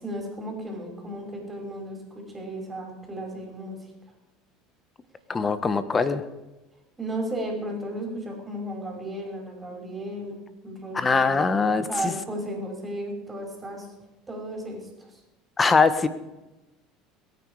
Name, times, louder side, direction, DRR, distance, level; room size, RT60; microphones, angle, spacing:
voice 1, 0.0-3.8 7.0-10.4 10.6-13.9 14.3-14.9, right 1 dB, 20° right, 1 dB, 5.7 m, -34 dB
voice 2, 5.3-6.2 10.9-12.1 15.6-16.1, left 4 dB, 25° left, 12 dB, 1.4 m, -22 dB
22.0 x 9.7 x 5.0 m, 1.0 s
hypercardioid pair, 80°, 0 cm